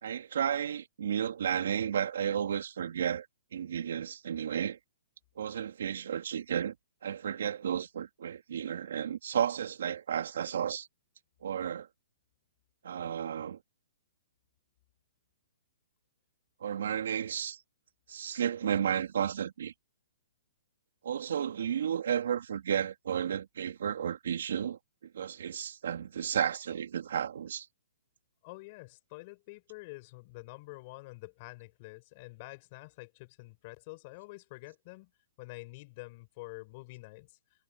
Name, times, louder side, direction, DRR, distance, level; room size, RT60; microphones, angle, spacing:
voice 1, 0.0-3.3 3.5-4.8 5.4-6.7 7.0-10.9 11.4-11.9 12.8-13.6 16.6-17.6 18.1-19.7 21.0-27.7, right 8 dB, 60° right, 3.0 m, -33 dB
voice 2, 28.4-35.1 35.4-37.4, left 24 dB, 25° left, 6.2 m, -47 dB
hypercardioid pair, 180°, 0 cm